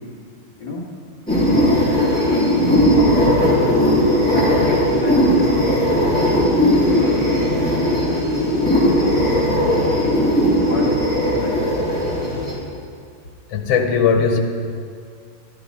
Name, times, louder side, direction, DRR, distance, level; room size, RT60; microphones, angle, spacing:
sound 1, 1.3-12.5, equal, 5° left, 2.9 m, -17 dB
voice 1, 3.2-3.8 4.3-6.1 6.7-7.4 9.6-9.9 10.6-10.9 11.1-12.0, left 2 dB, 55° left, -4 dB, 2.0 m, -28 dB
sound 2, 6.1-12.5, left 2 dB, 30° left, 2.0 m, -31 dB
voice 2, 13.5-14.4, left 6 dB, 90° left, 5 dB, 1.8 m, -18 dB
12.5 x 10.5 x 4.1 m, 2.2 s
omnidirectional pair, 2.4 m